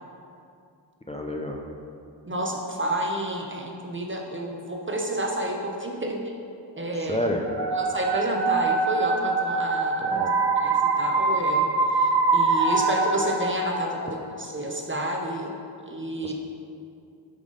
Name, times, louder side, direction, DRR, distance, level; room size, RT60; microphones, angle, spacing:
voice 1, 1.1-1.6 7.0-7.4 10.0-10.3 16.2-16.3, left 1 dB, 15° left, 0 dB, 0.5 m, -29 dB
voice 2, 2.3-6.3 6.8-7.2 7.7-10.2 10.6-15.6 15.9-16.3, right 1 dB, 25° right, 1 dB, 0.7 m, -30 dB
sound 1, 7.4-14.2, right 3 dB, 65° right, 0.8 m, -24 dB
5.3 x 4.8 x 3.9 m, 2.5 s
cardioid pair, 45°, 46 cm